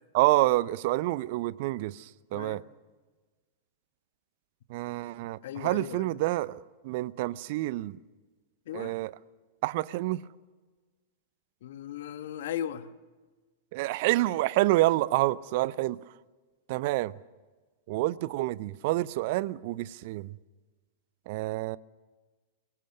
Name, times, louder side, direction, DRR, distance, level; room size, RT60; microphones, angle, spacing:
voice 1, 0.1-2.6 4.7-8.0 8.7-9.1 9.6-10.2 13.7-16.0 16.7-17.1 17.9-20.4 21.3-21.8, right 18 dB, 50° right, 0.6 m, -28 dB
voice 2, 5.4-6.1 8.7-8.9 11.6-12.9, left 10 dB, 60° left, 1.2 m, -37 dB
23.5 x 18.0 x 6.7 m
figure-of-eight pair, 100°, 0 cm